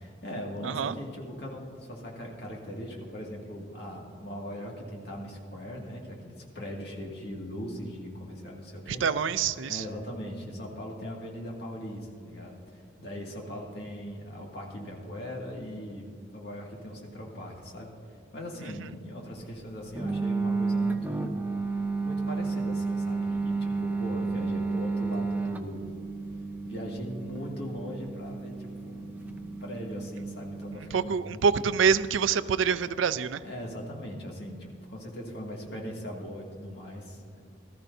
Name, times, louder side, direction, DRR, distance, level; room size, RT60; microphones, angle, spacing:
voice 1, 0.0-9.0 9.7-16.1 16.3-17.9 18.3-21.4 21.7-25.9 26.6-31.6 32.5-32.6 32.9-33.0 33.4-37.4, equal, 60° left, -2 dB, 2.2 m, -40 dB
voice 2, 0.6-1.0 8.9-9.8 30.9-33.4, right 6 dB, 90° right, 15 dB, 0.4 m, -26 dB
sound 1, 20.0-30.8, right 4 dB, 10° right, 0.5 m, -32 dB
18.5 x 13.5 x 2.7 m, 2.3 s
head